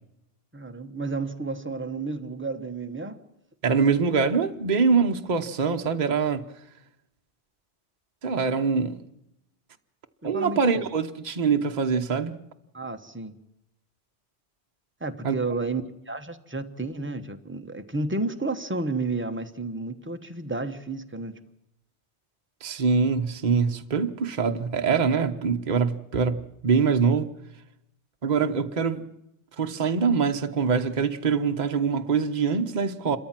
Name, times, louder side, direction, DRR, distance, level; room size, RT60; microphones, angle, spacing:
voice 1, 0.5-3.2 10.2-10.9 12.7-13.4 15.0-21.4, right 3 dB, 10° right, 1.1 m, -31 dB
voice 2, 3.6-6.4 8.2-9.0 10.2-12.4 15.2-15.4 22.6-27.3 28.2-29.0 29.6-33.2, right 5 dB, 40° right, 1.1 m, -24 dB
27.5 x 13.5 x 7.5 m
omnidirectional pair, 1.1 m